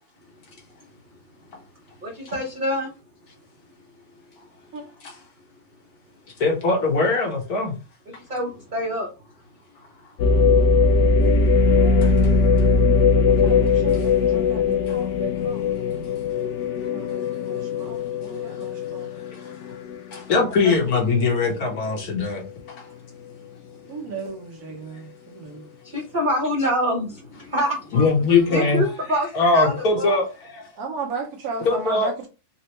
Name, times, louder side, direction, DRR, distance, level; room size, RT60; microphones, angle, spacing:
voice 1, 2.0-2.9 8.1-9.1 25.8-28.0 28.5-30.2, equal, 50° right, 0.6 m, -26 dB
voice 2, 6.4-7.7 12.0-12.1 14.9-15.0 19.3-19.5 20.1-22.8 27.9-28.8 29.3-30.6 31.6-32.1, left 3 dB, 60° left, 1.3 m, -21 dB
sound 1, 10.2-20.1 20.6-20.7 21.4-21.8, left 4 dB, 85° left, 0.6 m, -20 dB
voice 3, 11.6-12.1 13.3-16.1 16.9-19.1 23.9-25.7 30.8-32.3, right 3 dB, 65° right, 1.1 m, -35 dB
4.2 x 2.1 x 2.9 m
omnidirectional pair, 1.9 m